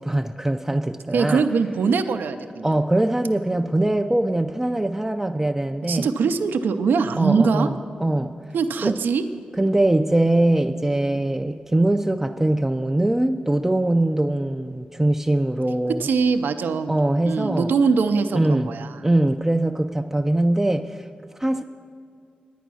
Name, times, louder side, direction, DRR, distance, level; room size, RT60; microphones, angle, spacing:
voice 1, 0.0-1.4 2.6-6.1 7.2-8.3 8.8-8.9 9.6-16.1 16.9-17.7 18.3-18.7 19.0-21.1 21.4-21.6, right 1 dB, 10° right, 5 dB, 0.4 m, -22 dB
voice 2, 1.1-2.7 5.9-7.7 8.5-9.2 11.0-11.3 16.0-16.9 17.2-19.0, right 5 dB, 85° right, 8 dB, 0.5 m, -22 dB
10.0 x 9.3 x 6.2 m, 2.4 s
cardioid pair, 65°, 3 cm